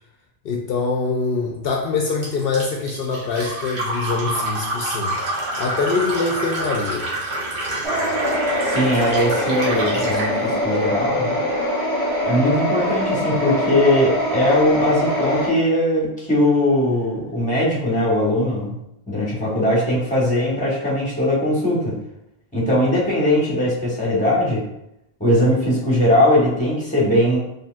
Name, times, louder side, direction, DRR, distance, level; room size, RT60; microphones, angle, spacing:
voice 1, 0.4-5.2 5.6-7.1, left 4 dB, 70° left, 0 dB, 0.8 m, -24 dB
Fill (with liquid), 2.2-10.3, right 1 dB, 50° right, 1.2 m, -27 dB
sound 1, 7.8-15.5, equal, 75° right, 1.4 m, -23 dB
voice 2, 8.6-11.4 12.2-18.8 19.1-22.0 22.5-24.7 25.2-27.4, left 1 dB, 10° left, -6 dB, 1.2 m, -20 dB
4.2 x 3.4 x 2.4 m, 0.83 s
omnidirectional pair, 1.0 m